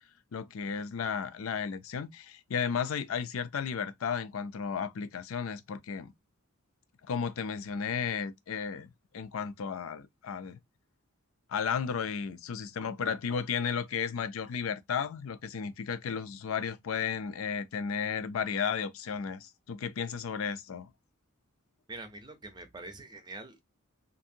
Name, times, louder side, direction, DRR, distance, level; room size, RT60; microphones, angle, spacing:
voice 1, 0.3-6.1 7.0-8.9 9.1-10.6 11.5-20.9, left 6 dB, 75° left, 0.4 m, -34 dB
voice 2, 21.9-23.6, right 2 dB, 20° right, 0.5 m, -45 dB
2.6 x 2.5 x 2.7 m
head